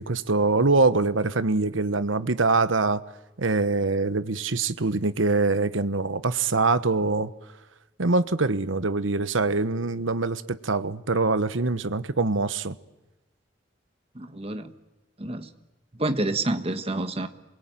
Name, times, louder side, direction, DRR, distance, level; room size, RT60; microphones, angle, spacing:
voice 1, 0.0-3.0 3.4-7.3 8.0-12.8, right 3 dB, 85° right, 1.1 m, -24 dB
voice 2, 14.1-14.7 15.2-15.5 16.0-17.3, right 2 dB, 30° right, 1.4 m, -28 dB
28.0 x 22.5 x 9.1 m
head